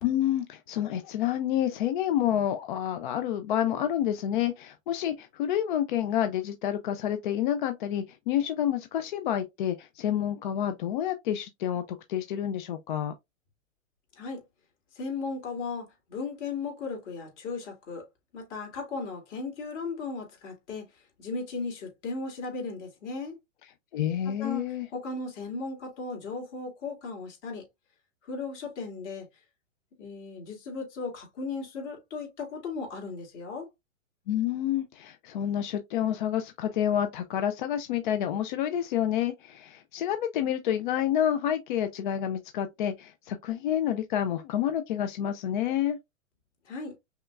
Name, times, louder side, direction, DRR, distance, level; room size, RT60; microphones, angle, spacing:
voice 1, 0.0-13.1 23.9-24.9 34.3-46.0, left 10 dB, 40° left, 0.4 m, -29 dB
voice 2, 14.9-18.0 18.3-23.4 24.3-27.6 28.3-29.3 30.0-33.7 46.7-46.9, left 4 dB, 60° left, 2.4 m, -36 dB
5.5 x 2.2 x 2.4 m
hypercardioid pair, 130°, 40 cm